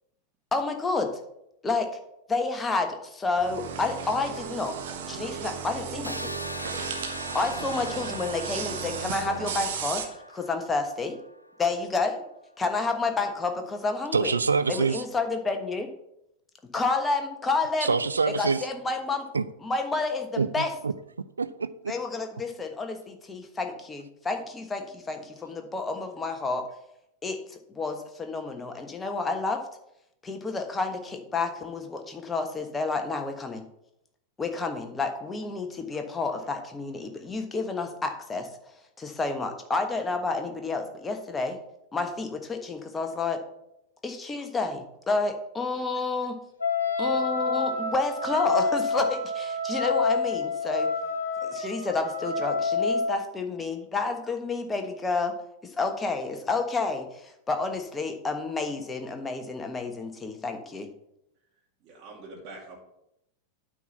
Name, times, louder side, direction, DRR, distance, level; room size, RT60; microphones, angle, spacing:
voice 1, 0.5-1.1 1.6-1.9 2.3-4.7 5.1-6.3 7.3-10.0 10.3-11.1 11.6-12.2 12.6-14.3 14.7-15.9 16.7-17.9 18.4-19.2 19.6-20.7 21.9-26.6 27.2-29.6 30.2-33.6 34.4-38.5 39.0-41.6 41.9-43.4 44.0-46.3 47.0-50.9 51.4-55.3 55.6-60.9, left 3 dB, 15° left, 1.3 m, -30 dB
sound 1, 3.4-10.1, right 7 dB, 55° right, 1.2 m, -35 dB
sound 2, 6.0-11.8, left 1 dB, 90° left, 0.5 m, -41 dB
voice 2, 14.1-15.0 17.8-18.7 19.3-19.5 20.4-20.9 21.4-21.9, right 4 dB, 75° right, 0.4 m, -26 dB
Wind instrument woodwind instrument, 46.6-53.2, left 3 dB, 75° left, 1.4 m, -28 dB
voice 3, 61.8-62.8, right 2 dB, 35° right, 2.2 m, -44 dB
9.1 x 4.3 x 6.9 m
figure-of-eight pair, 90°, 0 cm